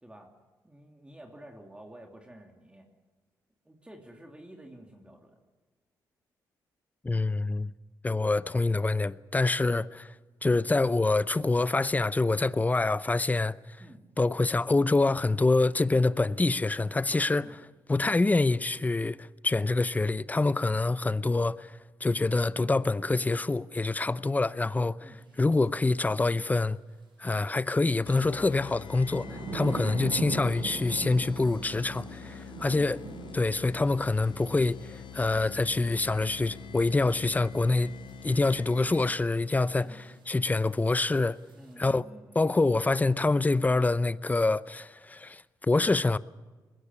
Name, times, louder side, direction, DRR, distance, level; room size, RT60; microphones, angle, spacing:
voice 1, 0.6-2.9 3.6-5.4 13.8-14.0 17.3-17.5 25.0-25.2 39.8-40.0 41.5-42.4, right 1 dB, 15° right, 2.9 m, -50 dB
voice 2, 7.0-7.7 8.0-10.1 10.4-13.5 14.2-17.5 17.9-25.1 25.4-26.8 27.2-33.0 33.3-37.9 38.2-40.0 40.3-41.4 41.8-42.0 42.3-46.2, left 3 dB, 20° left, 0.7 m, -26 dB
sound 1, 25.5-25.6 27.9-41.7, right 4 dB, 75° right, 7.2 m, -43 dB
sound 2, 28.1-39.4, left 10 dB, 75° left, 0.9 m, -46 dB
21.0 x 17.0 x 9.8 m
cardioid pair, 70°, 8 cm